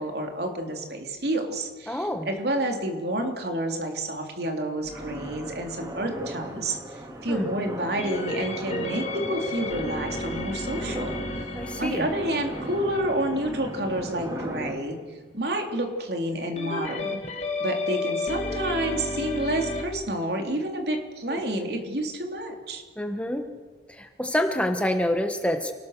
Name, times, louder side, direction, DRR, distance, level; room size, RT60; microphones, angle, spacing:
voice 1, 0.0-11.1 11.8-15.0 15.3-17.2 17.6-22.8, right 1 dB, 60° right, 3 dB, 3.4 m, -29 dB
voice 2, 1.9-2.3 7.3-7.4 11.5-12.1 21.3-21.6 23.0-23.5 23.9-25.7, left 1 dB, 5° left, 6 dB, 1.3 m, -27 dB
sound 1, 4.8-6.1 8.0-14.5 16.6-19.8, left 2 dB, 35° left, 2.4 m, -33 dB
sound 2, 4.9-14.7, equal, 20° right, 2.7 m, -37 dB
28.5 x 19.5 x 6.7 m, 1.4 s
head